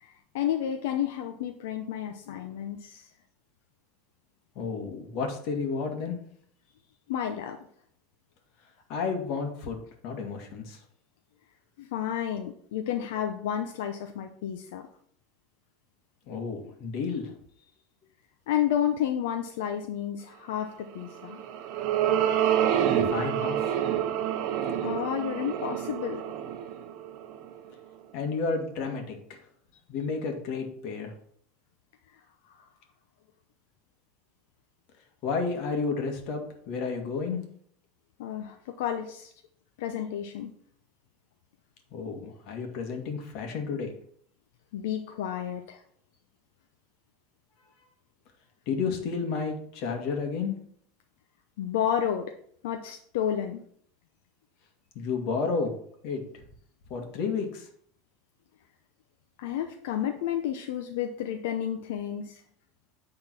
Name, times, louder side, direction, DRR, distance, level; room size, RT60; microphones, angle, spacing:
voice 1, 0.0-3.1 7.1-7.6 11.8-14.9 18.5-21.4 24.8-26.2 38.2-39.3 39.8-40.5 44.7-45.8 51.6-52.3 52.6-53.6 59.4-62.4, left 10 dB, 80° left, 5 dB, 0.7 m, -31 dB
voice 2, 4.6-6.2 8.9-10.8 16.3-17.3 22.9-23.7 28.1-29.4 29.9-31.1 35.2-37.4 41.9-43.9 48.7-50.6 55.0-55.7 56.0-56.4 56.9-57.7, left 5 dB, 50° left, 3 dB, 1.8 m, -31 dB
sound 1, 21.2-27.7, right 10 dB, 45° right, 0.8 m, -28 dB
8.8 x 3.8 x 6.1 m, 0.63 s
supercardioid pair, 160°, 0 cm